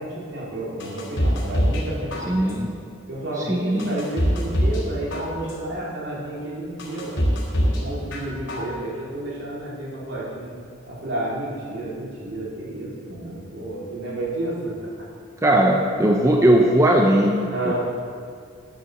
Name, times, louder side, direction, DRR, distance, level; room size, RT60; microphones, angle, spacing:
voice 1, 0.0-2.5 3.1-7.2 7.8-10.5 10.9-14.9 17.5-17.7, right 1 dB, 60° right, -6 dB, 4.1 m, -31 dB
sound 1, 0.8-1.8 2.1-2.7 3.2-3.3 3.8-4.8 5.1-5.7 6.2-6.3 6.8-7.8 8.1-8.7 9.1-9.2, equal, 60° left, 4.0 m, -23 dB
voice 2, 2.3-2.8 3.4-4.0 15.4-17.7, right 1 dB, 15° right, 0 dB, 0.8 m, -19 dB
12.5 x 9.2 x 6.7 m, 2.2 s
head